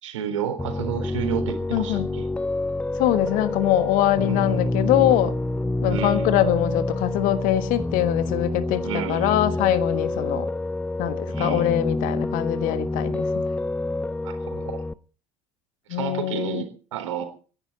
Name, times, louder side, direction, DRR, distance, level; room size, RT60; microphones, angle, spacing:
voice 1, 0.0-2.3 4.3-4.7 5.9-6.3 8.8-9.4 11.3-11.7 14.2-14.8 15.9-17.2, right 9 dB, 70° right, 3.9 m, -31 dB
Piano, 0.6-14.9, left 2 dB, 5° left, 0.7 m, -27 dB
voice 2, 1.7-2.1 3.0-5.4 5.8-10.5 11.0-13.4 15.9-16.6, left 12 dB, 55° left, 1.4 m, -23 dB
27.0 x 11.0 x 4.1 m
figure-of-eight pair, 65°, 17 cm